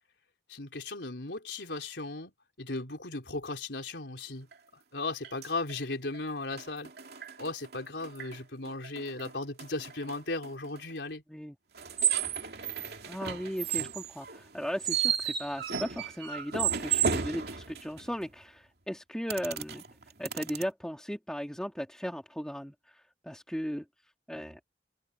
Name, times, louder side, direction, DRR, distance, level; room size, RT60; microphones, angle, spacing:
voice 1, 0.5-2.3 2.6-4.5 4.9-6.9 7.4-11.2, left 2 dB, 85° left, 3.7 m, -36 dB
sound 1, 4.5-4.6 5.2-5.7 6.1-6.2 6.5-8.4 8.6-10.8 11.8-18.2 19.3-20.6, right 8 dB, 65° right, 2.8 m, -33 dB
voice 2, 13.1-19.8 20.2-23.8 24.3-24.6, equal, 5° left, 1.9 m, -37 dB
head